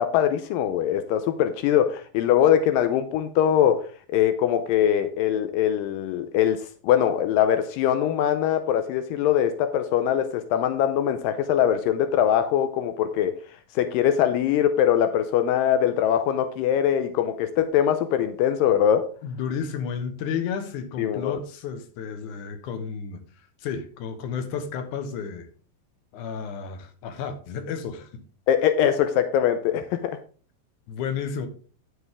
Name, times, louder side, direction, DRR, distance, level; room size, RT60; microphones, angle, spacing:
voice 1, 0.0-3.9 4.1-13.3 13.8-19.1 21.0-21.4 28.5-30.2, left 10 dB, 85° left, 9 dB, 2.4 m, -22 dB
voice 2, 19.2-23.2 23.6-25.5 26.1-28.2 30.9-31.5, left 6 dB, 70° left, 8 dB, 2.5 m, -32 dB
9.7 x 7.9 x 3.6 m, 0.40 s
omnidirectional pair, 4.0 m